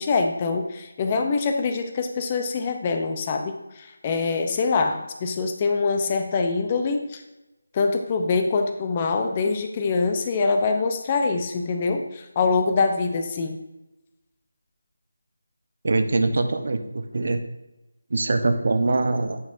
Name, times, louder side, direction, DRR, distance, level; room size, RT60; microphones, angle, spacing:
voice 1, 0.0-7.2 7.7-13.6, left 4 dB, 25° left, 5 dB, 0.6 m, -24 dB
voice 2, 15.8-17.4 18.1-19.4, right 2 dB, 55° right, 7 dB, 0.8 m, -23 dB
9.5 x 6.2 x 2.7 m, 1.0 s
figure-of-eight pair, 165°, 0 cm